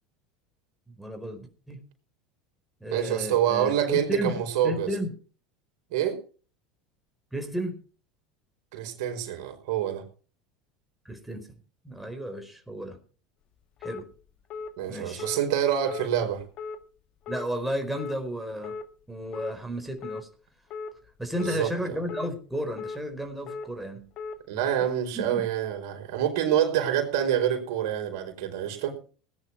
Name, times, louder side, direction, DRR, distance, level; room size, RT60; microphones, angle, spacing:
voice 1, 0.9-1.8 2.8-5.1 7.3-7.8 11.0-11.6 11.8-13.0 13.8-14.1 14.9-15.3 17.3-18.8 19.1-20.3 21.2-24.1 25.1-25.5, equal, 5° right, 4 dB, 4.6 m, -33 dB
voice 2, 2.9-4.9 5.9-6.2 8.7-10.0 14.8-16.4 21.4-21.7 24.5-29.0, right 10 dB, 70° right, 5 dB, 4.8 m, -26 dB
sound 1, 13.8-14.0 14.5-14.7 15.2-15.4 15.9-16.1 16.6-16.8 17.3-17.5 18.0-18.2 18.6-18.9 19.3-19.5 20.0-20.2 20.7-20.9 21.4-21.6 22.1-22.3 22.8-23.0 23.5-23.7 24.2-24.4, left 4 dB, 50° left, 1.7 m, -36 dB
19.5 x 10.0 x 4.7 m, 0.39 s
hypercardioid pair, 90°, 2 cm